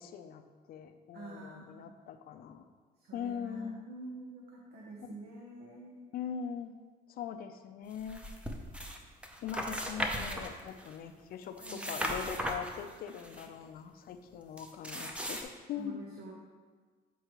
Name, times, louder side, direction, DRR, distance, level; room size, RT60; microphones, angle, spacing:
voice 1, 0.0-2.7 3.1-3.8 5.0-5.2 6.1-6.7 7.1-8.3 9.4-16.0, left 8 dB, 60° left, 8 dB, 0.5 m, -41 dB
voice 2, 1.1-1.8 3.0-6.1 11.6-11.9 15.8-16.3, right 2 dB, 75° right, -2 dB, 0.9 m, -47 dB
sound 1, 8.0-9.0 9.2-11.0 11.4-13.5 14.6-15.4, equal, 5° right, 0.6 m, -37 dB
8.1 x 4.6 x 3.0 m, 1.5 s
cardioid pair, 110°, 17 cm